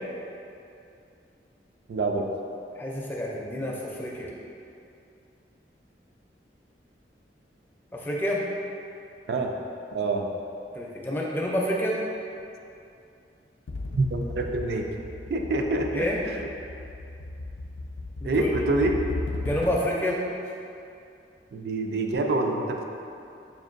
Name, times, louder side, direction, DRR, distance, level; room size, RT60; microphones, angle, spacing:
voice 1, 1.9-2.3 9.3-9.5 9.9-10.3 13.9-14.9 15.3-16.5 18.2-19.0 21.5-22.8, right 2 dB, 60° right, 3 dB, 0.3 m, -26 dB
voice 2, 2.8-4.3 7.9-8.4 10.7-12.0 15.9-16.2 18.2-18.5 19.4-20.2, equal, 10° left, -4 dB, 0.4 m, -28 dB
sound 1, 13.7-20.0, left 2 dB, 85° left, 0.3 m, -36 dB
5.2 x 2.5 x 2.5 m, 2.6 s
head